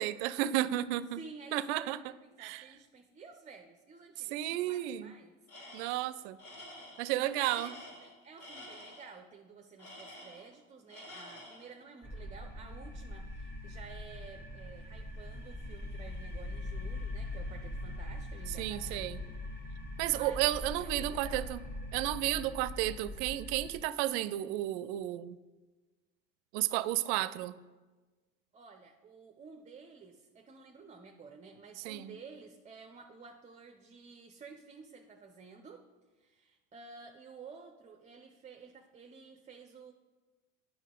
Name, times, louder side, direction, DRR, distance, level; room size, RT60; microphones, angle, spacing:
voice 1, 0.0-1.2 1.5-2.0 2.4-2.6 4.3-5.1 5.7-6.4 7.0-7.7 18.6-19.2 20.0-21.6 21.9-25.4 26.5-27.6 31.8-32.2, right 14 dB, 60° right, 16 dB, 0.5 m, -32 dB
voice 2, 1.1-5.4 7.1-19.1 20.1-20.4 20.7-21.5 28.5-35.9 36.2-39.9, right 5 dB, 20° right, 4 dB, 0.6 m, -52 dB
Tools, 5.5-6.1 6.4-9.1 9.8-10.6 10.9-11.7, left 1 dB, 50° left, 2.4 m, -49 dB
sound 1, 12.0-23.8, left 1 dB, 25° left, 2.0 m, -42 dB
9.2 x 5.9 x 3.7 m, 1.3 s
hypercardioid pair, 75°, 39 cm